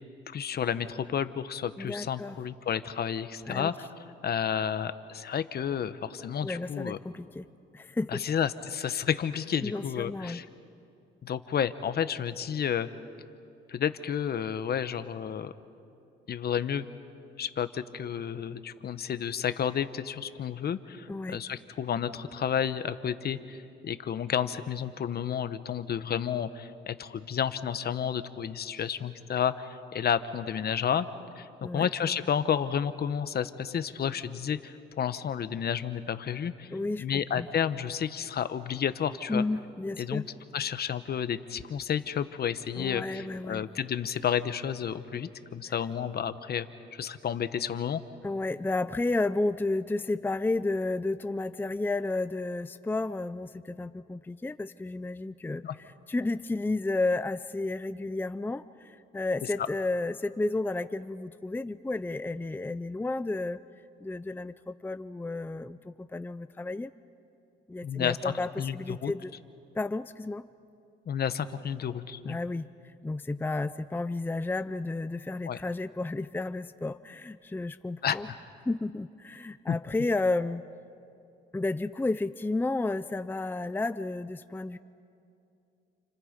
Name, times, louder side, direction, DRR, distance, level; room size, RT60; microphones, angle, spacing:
voice 1, 0.3-3.9 4.2-7.0 8.1-10.5 11.2-12.9 13.7-15.5 16.3-16.9 17.4-31.1 31.4-31.5 31.7-36.7 37.0-39.4 40.0-40.2 40.5-46.7 46.9-48.0 55.6-55.8 67.8-69.1 71.1-72.4 75.4-75.6 78.0-78.2 79.7-79.8, left 8 dB, 55° left, 12 dB, 1.1 m, -31 dB
voice 2, 1.8-2.4 3.5-3.7 6.4-7.5 7.7-8.2 9.6-10.4 21.1-21.4 31.6-31.9 36.7-37.5 39.3-40.3 42.8-43.6 48.2-55.6 56.1-63.6 64.0-66.9 67.7-69.3 69.7-70.4 72.3-72.7 73.0-78.3 78.7-80.6 81.5-84.8, left 2 dB, 10° left, 13 dB, 0.5 m, -32 dB
30.0 x 29.5 x 5.3 m, 2.6 s
cardioid pair, 90°, 20 cm